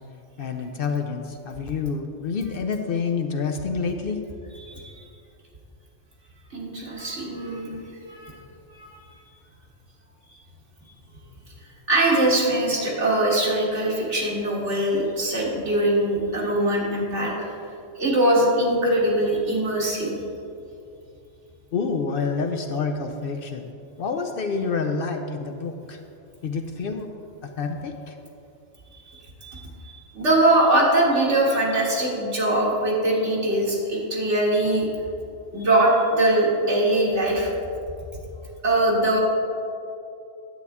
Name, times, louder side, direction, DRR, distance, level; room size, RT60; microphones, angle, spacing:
voice 1, 0.4-4.2 21.7-23.6 24.0-26.0 26.4-27.1 27.6-28.1, left 5 dB, 60° left, 5 dB, 0.7 m, -28 dB
voice 2, 4.6-4.9 6.5-7.8 8.1-8.4 8.7-8.9 11.9-17.5 18.0-20.2 29.4-34.9 35.5-37.5 38.6-39.2, right 1 dB, 70° right, -4 dB, 1.8 m, -22 dB
10.0 x 8.1 x 3.5 m, 2.6 s
omnidirectional pair, 1.3 m